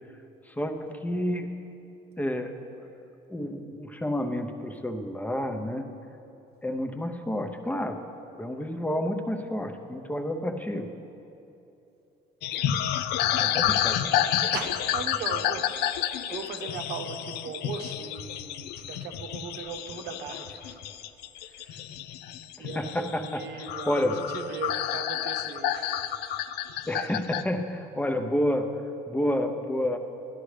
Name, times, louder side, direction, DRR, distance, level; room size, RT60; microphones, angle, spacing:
voice 1, 0.5-1.5 2.2-3.0 3.3-5.9 6.6-8.0 8.4-10.9 13.4-14.3 22.7-23.4 23.9-24.2 26.9-28.7 29.1-30.0, left 1 dB, 10° left, 6 dB, 0.6 m, -30 dB
sound 1, 12.4-27.4, left 11 dB, 80° left, 0.4 m, -30 dB
voice 2, 13.2-13.6 14.5-20.8 21.4-21.8 22.6-26.0, right 6 dB, 80° right, 5 dB, 0.8 m, -39 dB
11.5 x 11.5 x 3.3 m, 2.8 s
cardioid pair, 110°, 17 cm